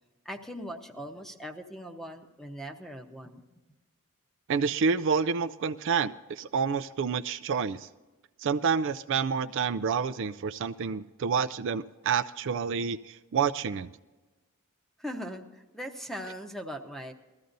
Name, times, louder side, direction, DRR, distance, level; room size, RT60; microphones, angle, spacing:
voice 1, 0.2-3.4 15.0-17.1, equal, ahead, 5 dB, 0.9 m, -40 dB
voice 2, 4.5-7.9 8.4-13.9, right 6 dB, 60° right, 12 dB, 0.4 m, -28 dB
20.5 x 14.0 x 2.6 m, 1.2 s
head